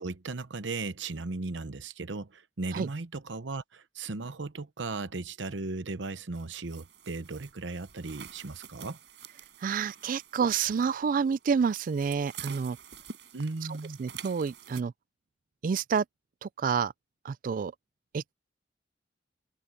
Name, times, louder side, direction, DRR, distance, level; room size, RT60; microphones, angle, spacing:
voice 1, 0.0-9.0 13.3-14.0, right 3 dB, 90° right, 0.9 m, -36 dB
sound 1, 6.3-14.8, right 7 dB, 70° right, 6.4 m, -48 dB
voice 2, 9.6-12.8 14.0-14.9 15.6-16.1 16.4-16.9 17.2-17.7 18.1-18.3, right 6 dB, 45° right, 0.3 m, -28 dB
head